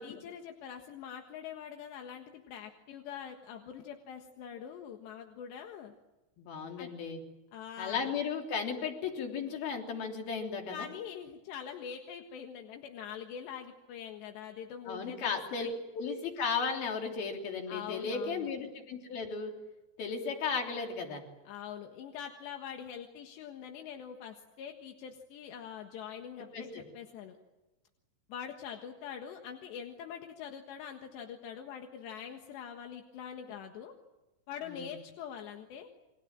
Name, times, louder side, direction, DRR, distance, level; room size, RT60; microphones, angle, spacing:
voice 1, 0.0-5.9 6.8-6.9 7.5-8.2 10.7-15.7 17.7-18.5 21.5-27.4 28.3-33.9 34.5-35.9, left 8 dB, 80° left, 3 dB, 3.8 m, -44 dB
voice 2, 6.4-7.2 7.8-10.9 14.9-15.7 15.9-19.5 20.0-21.2 26.5-26.8 34.6-34.9, left 5 dB, 60° left, 2 dB, 5.0 m, -35 dB
29.5 x 24.0 x 7.5 m, 1.0 s
omnidirectional pair, 5.0 m